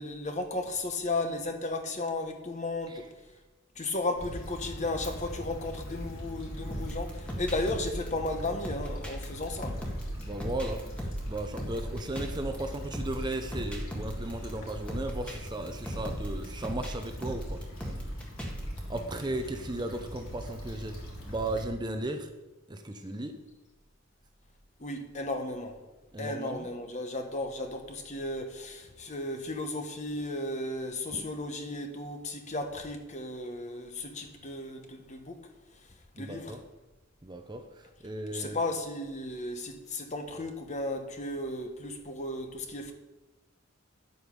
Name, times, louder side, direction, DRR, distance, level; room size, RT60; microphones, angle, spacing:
voice 1, 0.0-3.0 3.8-9.8 24.8-25.8 26.2-35.4 36.1-36.5 38.3-42.9, left 2 dB, 35° left, 1.1 m, -34 dB
Stream / Traffic noise roadway noise / Trickle dribble, 4.1-21.7, equal, 80° left, 3.4 m, -41 dB
sound 1, 6.7-19.0, equal, 5° left, 1.7 m, -37 dB
voice 2, 10.2-18.1 18.9-22.3 22.7-23.4 26.1-26.7 31.1-31.3 36.2-36.6 37.2-38.6, right 1 dB, 20° right, 0.7 m, -36 dB
10.5 x 8.1 x 5.3 m
head